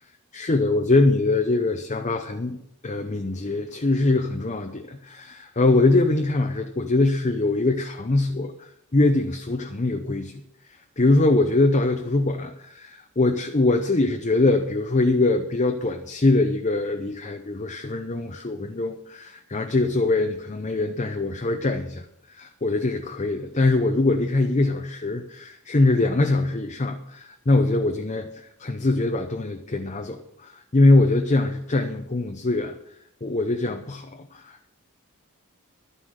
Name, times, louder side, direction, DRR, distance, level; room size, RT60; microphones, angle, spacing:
voice 1, 0.3-2.6 2.8-10.4 11.0-32.8 33.2-34.7, left 2 dB, 35° left, 5 dB, 0.7 m, -23 dB
12.0 x 9.7 x 6.4 m, 0.77 s
head